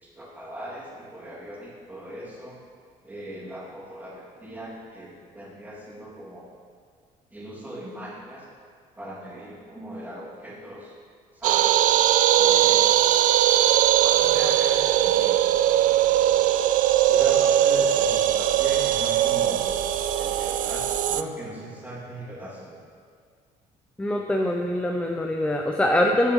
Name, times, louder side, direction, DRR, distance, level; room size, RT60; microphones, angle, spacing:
voice 1, 0.0-2.6 3.0-6.5 7.3-8.5 9.0-11.0 11.3-11.8 12.4-13.0 14.0-19.7 20.2-22.8, equal, 10° right, -6 dB, 2.6 m, -39 dB
sound 1, 11.4-21.2, right 11 dB, 60° right, 0.4 m, -20 dB
voice 2, 24.0-26.3, left 1 dB, 5° left, 2 dB, 0.6 m, -23 dB
16.0 x 7.1 x 3.2 m, 2.1 s
cardioid pair, 115°, 15 cm